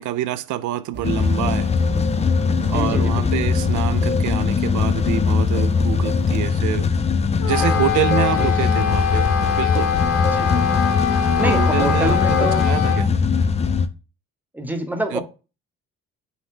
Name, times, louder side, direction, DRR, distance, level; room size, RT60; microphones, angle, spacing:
voice 1, 0.0-1.7 2.7-6.9 7.4-9.9 11.4-13.1 15.1-15.2, right 12 dB, 75° right, 0.5 m, -26 dB
sound 1, 0.9-6.5, right 2 dB, 35° right, 0.7 m, -35 dB
sound 2, 1.0-13.9, left 5 dB, 20° left, 0.4 m, -20 dB
voice 2, 2.7-3.3 8.4-8.7 10.3-10.7 11.4-12.7 14.5-15.2, right 1 dB, 5° right, 0.8 m, -26 dB
Wind instrument woodwind instrument, 7.4-13.0, left 8 dB, 50° left, 0.8 m, -23 dB
5.6 x 2.1 x 3.6 m
cardioid pair, 90°, 30 cm